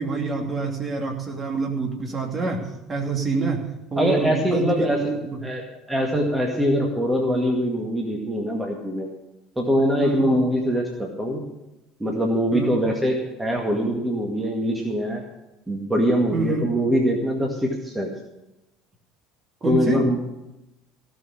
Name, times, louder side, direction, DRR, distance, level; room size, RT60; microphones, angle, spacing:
voice 1, 0.0-5.4 10.0-10.2 12.5-12.8 16.3-16.7 19.6-20.1, right 3 dB, 30° right, 2 dB, 2.7 m, -27 dB
voice 2, 4.0-5.0 5.4-5.6 5.9-9.1 9.6-11.4 12.0-15.2 15.7-18.1 19.6-20.2, equal, 10° right, 0 dB, 2.0 m, -23 dB
16.5 x 6.4 x 8.7 m, 0.93 s
figure-of-eight pair, 65°, 0 cm